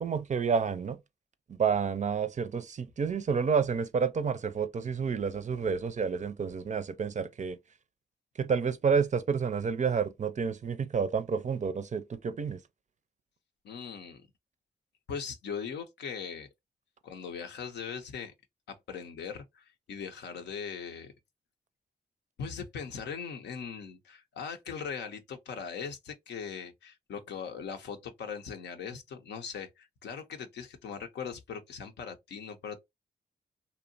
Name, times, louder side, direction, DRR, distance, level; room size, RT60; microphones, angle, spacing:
voice 1, 0.0-1.0 1.5-7.6 8.4-12.6, right 6 dB, 45° right, 0.4 m, -29 dB
voice 2, 13.6-14.2 15.1-16.5 17.0-18.3 18.7-21.1 22.4-32.8, left 6 dB, 85° left, 0.6 m, -40 dB
2.7 x 2.1 x 2.5 m
supercardioid pair, 45°, 17 cm